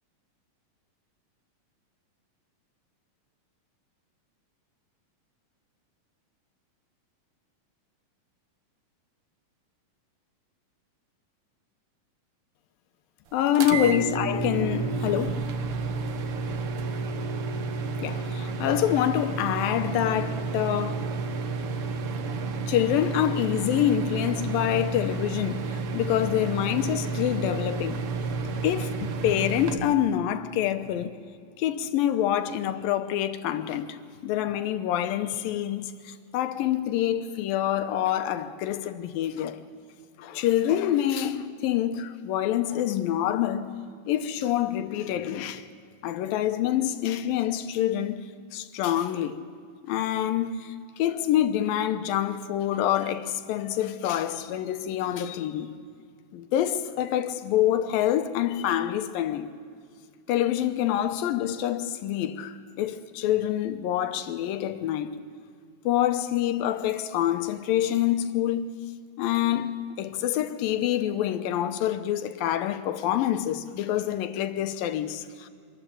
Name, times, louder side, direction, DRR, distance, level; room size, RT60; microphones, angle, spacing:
voice 1, 13.3-15.4 18.0-21.1 22.7-28.0 28.6-31.2 31.6-39.6 40.2-43.8 44.1-45.7 46.0-49.4 49.8-55.8 56.3-59.5 60.3-65.2 65.9-68.7 69.2-75.5, left 11 dB, 85° left, 2.6 m, -26 dB
sound 1, 13.5-29.8, right 4 dB, 70° right, 1.3 m, -31 dB
25.5 x 13.5 x 8.8 m
omnidirectional pair, 4.1 m